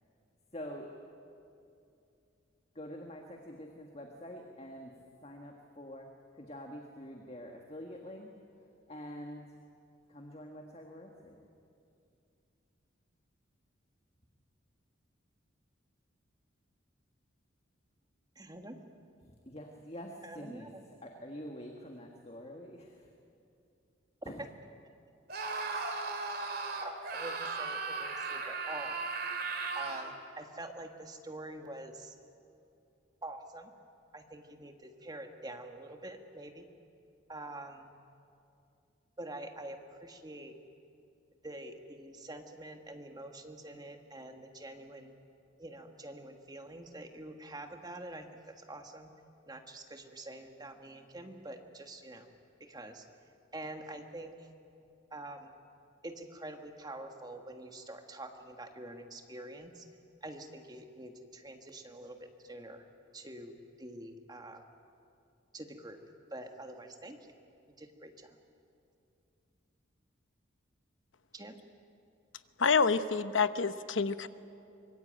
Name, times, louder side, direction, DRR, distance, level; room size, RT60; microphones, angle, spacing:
voice 1, 0.5-0.9 2.7-4.9 5.2-6.1 6.3-8.3 8.9-9.5 10.1-11.4 19.2-23.1 24.2-24.5, equal, 30° left, 2 dB, 1.7 m, -46 dB
voice 2, 18.3-18.8 20.2-20.8 24.2-24.4 26.8-29.0 29.7-32.2 33.2-33.7 34.1-36.7 37.3-37.9 39.2-40.5 41.4-45.2 45.6-48.3 48.6-49.1 49.4-52.3 52.6-53.0 53.5-54.5 55.1-55.5 56.0-59.8 60.2-62.8 63.1-64.6 65.5-66.0 66.3-67.2 67.8-68.4 71.3-71.6, right 1 dB, 20° right, 5 dB, 1.6 m, -46 dB
Screaming, 25.3-30.1, right 4 dB, 50° right, 2.4 m, -36 dB
voice 3, 72.6-74.3, left 5 dB, 75° left, 12 dB, 0.9 m, -27 dB
24.5 x 21.5 x 8.9 m, 2.6 s
head